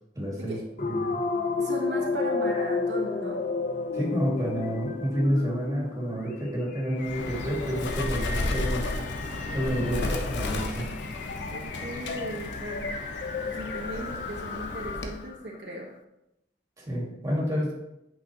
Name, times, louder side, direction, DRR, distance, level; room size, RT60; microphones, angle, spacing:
voice 1, 0.2-0.6 0.9-1.1 3.9-8.9 9.5-10.8 16.8-17.7, equal, 20° right, -3 dB, 2.2 m, -29 dB
sound 1, 0.8-15.3, left 4 dB, 50° left, 0.5 m, -33 dB
voice 2, 1.6-3.4 9.7-10.0 10.4-11.0 11.5-12.9 13.4-15.9, right 1 dB, 75° right, -3 dB, 1.4 m, -38 dB
Bird, 7.0-15.3, left 2 dB, 90° left, 0.8 m, -33 dB
8.6 x 5.5 x 3.0 m, 0.87 s
head